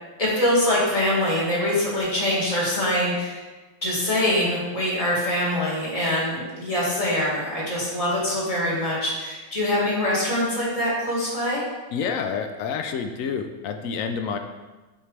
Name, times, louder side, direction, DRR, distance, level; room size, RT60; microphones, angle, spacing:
voice 1, 0.2-3.4 3.8-11.6, left 1 dB, 20° left, -6 dB, 1.9 m, -24 dB
voice 2, 11.9-14.4, left 6 dB, 75° left, 6 dB, 0.7 m, -28 dB
7.7 x 5.8 x 3.3 m, 1.2 s
omnidirectional pair, 1.9 m